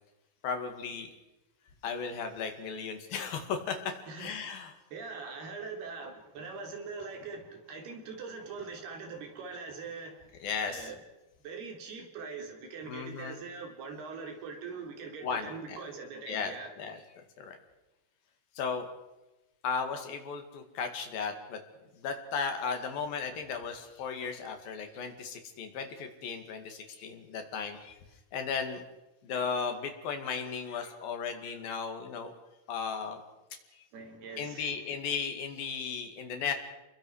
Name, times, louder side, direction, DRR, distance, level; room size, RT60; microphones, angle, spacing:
voice 1, 0.4-1.1 1.8-4.7 10.4-10.9 12.9-13.4 15.2-15.8 16.3-17.6 18.6-18.9 19.6-21.6 21.9-28.0 28.3-28.8 29.2-32.3 32.7-33.2 33.7-33.8 34.4-36.5, left 6 dB, 55° left, 6 dB, 3.4 m, -35 dB
voice 2, 4.1-4.6 4.9-10.2 10.6-11.0 11.4-16.7 33.9-34.8, right 4 dB, 55° right, 3 dB, 4.9 m, -42 dB
28.0 x 22.5 x 4.8 m, 1.0 s
omnidirectional pair, 5.7 m